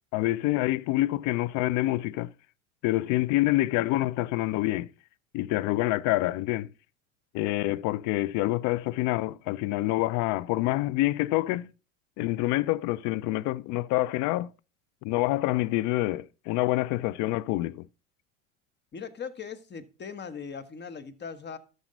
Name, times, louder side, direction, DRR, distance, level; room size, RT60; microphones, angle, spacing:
voice 1, 0.1-2.3 2.8-4.9 5.3-6.7 7.3-11.7 12.2-14.5 15.0-17.9, left 17 dB, 50° left, 0.6 m, -27 dB
voice 2, 18.9-21.6, left 6 dB, 25° left, 1.5 m, -39 dB
13.0 x 5.5 x 5.3 m
hypercardioid pair, 80°, 38 cm